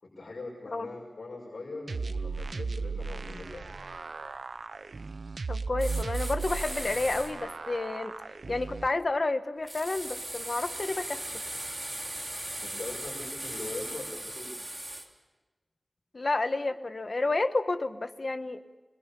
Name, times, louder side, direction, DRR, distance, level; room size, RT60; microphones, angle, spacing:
voice 1, 0.0-3.7 12.6-14.5, left 2 dB, 90° left, -3 dB, 6.1 m, -41 dB
sound 1, 1.9-8.9, right 4 dB, 80° right, 0.8 m, -36 dB
voice 2, 5.5-8.1 8.5-11.2 16.1-18.6, left 2 dB, 50° left, 9 dB, 1.4 m, -30 dB
sound 2, 5.8-7.3 9.7-15.1, right 1 dB, 20° right, 3.3 m, -38 dB
27.5 x 22.5 x 7.0 m, 1.2 s
wide cardioid pair, 85°, 0 cm